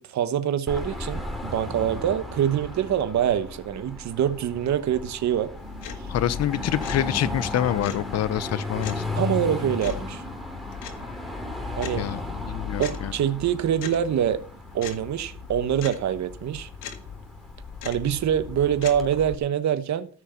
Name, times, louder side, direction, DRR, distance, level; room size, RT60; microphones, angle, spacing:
voice 1, 0.0-5.5 9.2-10.2 11.8-12.1 12.8-14.4 14.7-16.7 17.8-20.1, right 9 dB, 65° right, 1.2 m, -25 dB
Car passing by / Traffic noise roadway noise / Engine, 0.7-19.4, left 2 dB, ahead, 3.0 m, -36 dB
sound 1, 5.6-19.4, left 8 dB, 85° left, 1.9 m, -40 dB
voice 2, 6.1-9.0 11.9-12.2 12.5-13.1, left 11 dB, 55° left, 0.8 m, -26 dB
14.0 x 6.2 x 7.0 m
cardioid pair, 90°, 30 cm